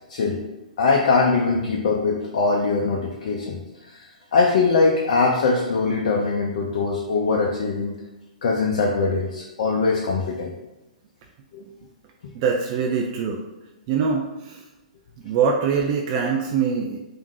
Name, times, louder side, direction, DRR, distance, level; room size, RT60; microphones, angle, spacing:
voice 1, 0.8-3.6 3.9-4.0 4.3-8.0 8.4-10.5 11.5-11.6, left 4 dB, 55° left, -1 dB, 0.5 m, -21 dB
voice 2, 12.3-13.4 13.9-14.7 15.2-17.0, right 6 dB, 40° right, 0 dB, 0.4 m, -23 dB
3.6 x 2.6 x 4.5 m, 0.98 s
figure-of-eight pair, 110°, 4 cm